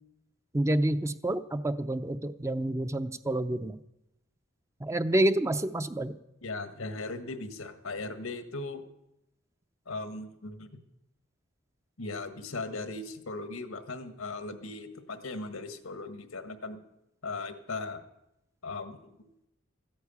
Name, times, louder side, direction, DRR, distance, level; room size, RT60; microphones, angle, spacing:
voice 1, 0.5-3.8 4.8-6.1, right 1 dB, 15° right, 11 dB, 0.5 m, -28 dB
voice 2, 6.4-8.8 9.9-10.7 12.0-16.8 17.2-18.0 18.6-19.3, left 3 dB, 85° left, 10 dB, 1.5 m, -38 dB
14.5 x 9.6 x 8.4 m, 0.86 s
head